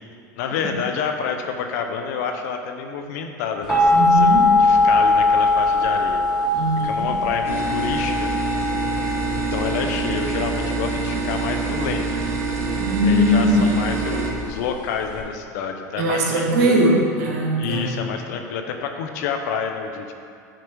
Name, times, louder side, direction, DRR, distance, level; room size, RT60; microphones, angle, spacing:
voice 1, 0.4-4.3 4.6-6.2 6.8-8.3 9.3-12.2 13.0-16.8 17.6-20.1, left 6 dB, 65° left, 5 dB, 0.8 m, -28 dB
sound 1, 3.7-15.2, left 2 dB, 5° right, 1.6 m, -21 dB
voice 2, 3.9-4.6 6.5-7.1 12.8-13.7 16.0-17.9, right 1 dB, 70° right, -2 dB, 1.9 m, -20 dB
sound 2, 7.4-14.3, right 4 dB, 25° right, 1.7 m, -26 dB
9.1 x 4.7 x 4.6 m, 2.5 s
hypercardioid pair, 100°, 10 cm